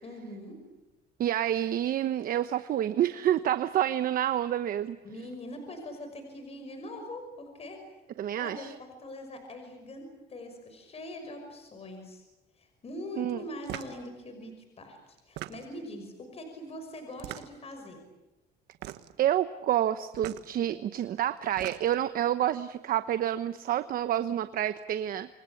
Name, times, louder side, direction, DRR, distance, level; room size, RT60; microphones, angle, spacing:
voice 1, 0.0-0.6 5.0-7.8 8.4-12.2 12.6-18.0, left 1 dB, 35° left, 5 dB, 5.9 m, -42 dB
voice 2, 1.2-5.0 8.2-8.7 13.2-13.4 19.2-25.3, right 11 dB, 60° right, 11 dB, 1.0 m, -28 dB
sound 1, 13.6-14.0 15.2-15.9 17.1-17.7 18.7-19.2 20.1-20.5 21.4-22.1, right 15 dB, 85° right, 1.5 m, -41 dB
27.5 x 23.0 x 8.6 m, 1.1 s
cardioid pair, 110°, 17 cm